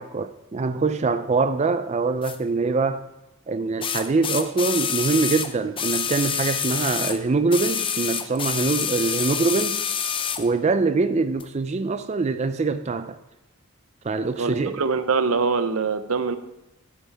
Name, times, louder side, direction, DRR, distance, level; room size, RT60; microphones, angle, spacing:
voice 1, 0.0-3.0 3.5-9.8 10.4-13.2 14.0-14.8, right 4 dB, 30° right, 0.4 m, -24 dB
sound 1, 2.2-2.4 3.8-7.2 7.5-10.5 11.4-11.5, left 7 dB, 25° left, 0.6 m, -27 dB
voice 2, 14.4-16.4, right 4 dB, 85° right, 0.8 m, -23 dB
12.0 x 9.4 x 3.4 m
head